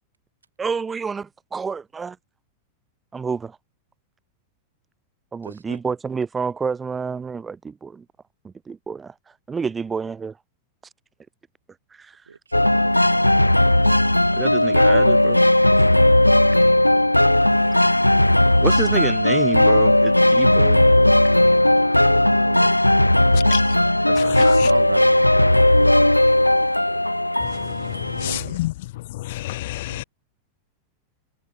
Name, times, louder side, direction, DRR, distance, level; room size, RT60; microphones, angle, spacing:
voice 1, 0.6-2.2 3.1-3.6 5.3-8.0 8.4-9.1 9.5-10.4 11.9-12.2 14.4-15.4 18.6-20.9 23.8-24.4, right 5 dB, 15° right, 1.0 m, -29 dB
voice 2, 5.4-5.8 12.3-13.5 22.1-22.8 24.7-26.3 28.2-28.6 29.9-30.0, right 5 dB, 75° right, 3.3 m, -35 dB
sound 1, 12.5-28.4, left 1 dB, 85° left, 0.7 m, -16 dB
voice 3, 24.2-24.7 27.4-28.7 29.1-30.0, left 17 dB, 55° left, 0.9 m, -29 dB
figure-of-eight pair, 90°, 0 cm